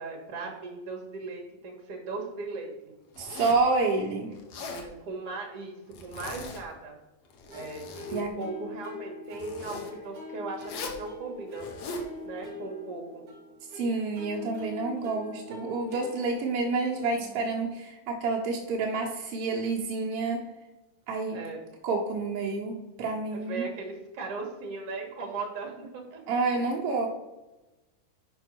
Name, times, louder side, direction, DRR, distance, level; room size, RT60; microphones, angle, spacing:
voice 1, 0.0-2.9 4.6-7.0 7.5-11.7 12.2-13.2 21.3-21.7 23.3-26.2, right 3 dB, 55° right, 0 dB, 1.9 m, -38 dB
Zipper (clothing), 3.1-3.7 4.4-4.9 5.9-6.7 7.3-8.3 9.3-9.9 10.6-11.0 11.6-12.1, left 3 dB, 75° left, 1.4 m, -40 dB
voice 2, 3.2-4.3 8.1-8.3 13.7-20.4 21.1-21.4 21.8-23.7 26.3-27.1, right 3 dB, 80° right, -1 dB, 1.3 m, -29 dB
sound 1, 7.5-17.6, left 4 dB, 20° right, 1.7 m, -43 dB
5.9 x 5.4 x 6.0 m, 1.0 s
omnidirectional pair, 4.1 m